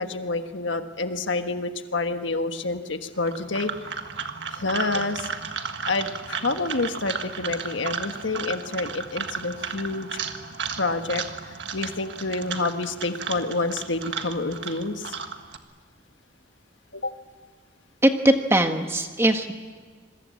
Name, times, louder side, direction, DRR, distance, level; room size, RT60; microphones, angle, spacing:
voice 1, 0.0-3.7 4.5-5.3 5.9-10.2 10.8-11.2 11.7-15.1 16.9-17.1, left 3 dB, 70° left, 7 dB, 1.5 m, -28 dB
sound 1, 3.2-15.6, right 5 dB, 65° right, 1.7 m, -34 dB
voice 2, 18.0-19.5, right 1 dB, 15° right, 5 dB, 1.5 m, -20 dB
27.0 x 22.5 x 8.4 m, 1.5 s
head